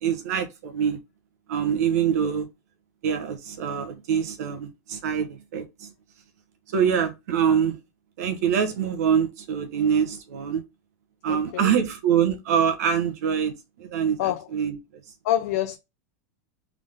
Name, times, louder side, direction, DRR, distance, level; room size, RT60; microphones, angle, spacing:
voice 1, 0.0-1.0 1.5-2.5 3.0-5.9 6.7-7.8 8.2-10.6 11.2-14.8, right 8 dB, 65° right, 1.3 m, -24 dB
voice 2, 11.3-11.7 14.2-14.5 15.2-15.8, left 12 dB, 60° left, 0.5 m, -26 dB
3.7 x 3.6 x 3.7 m
supercardioid pair, 155°, 9 cm